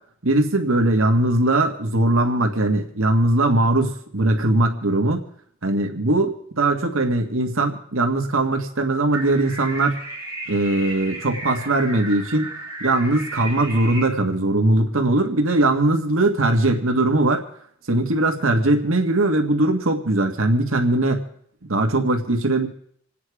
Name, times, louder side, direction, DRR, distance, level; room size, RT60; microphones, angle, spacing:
voice 1, 0.2-5.2 5.6-10.0 10.5-12.5 12.8-17.4 17.9-21.2 21.7-22.7, right 2 dB, 80° right, 3 dB, 1.8 m, -20 dB
sound 1, 9.1-14.0, right 2 dB, 15° right, 3.8 m, -34 dB
27.5 x 9.4 x 4.9 m, 0.65 s
head